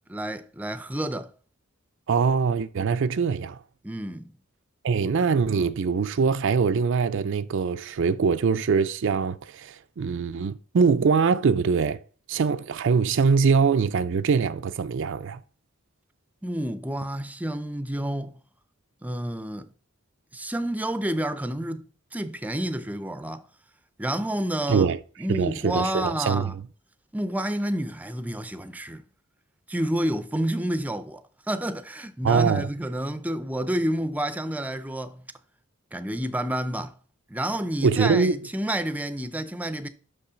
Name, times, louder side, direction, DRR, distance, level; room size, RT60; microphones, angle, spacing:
voice 1, 0.1-1.3 3.8-4.4 16.4-18.4 19.0-19.7 20.3-23.5 24.0-24.9 25.2-26.6 27.1-29.0 29.7-35.2 35.9-36.9 37.3-39.9, right 1 dB, 10° right, 0.5 m, -29 dB
voice 2, 2.1-3.6 4.8-12.0 12.3-15.4 24.7-25.0 25.3-26.5 32.2-32.7 37.8-38.4, right 5 dB, 65° right, 0.4 m, -23 dB
6.2 x 5.5 x 5.1 m
head